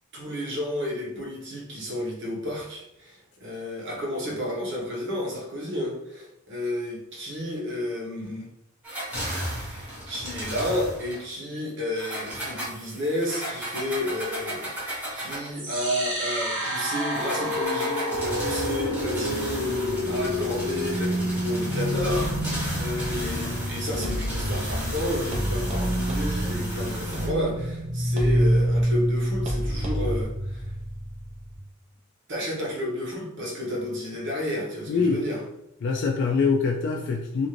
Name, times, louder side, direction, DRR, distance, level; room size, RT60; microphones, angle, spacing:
voice 1, 0.1-8.5 9.6-30.7 32.3-35.4, left 1 dB, 60° right, -3 dB, 0.9 m, -31 dB
sound 1, 8.8-11.2 11.9-15.6 17.1-27.3, equal, 10° right, 1.0 m, -34 dB
sound 2, 15.5-31.5, equal, 85° right, 1.3 m, -28 dB
sound 3, 22.0-30.2, equal, 35° right, 0.5 m, -34 dB
voice 2, 34.9-35.2 35.8-37.5, left 4 dB, 60° left, 2 dB, 0.3 m, -24 dB
2.5 x 2.5 x 3.0 m, 0.81 s
head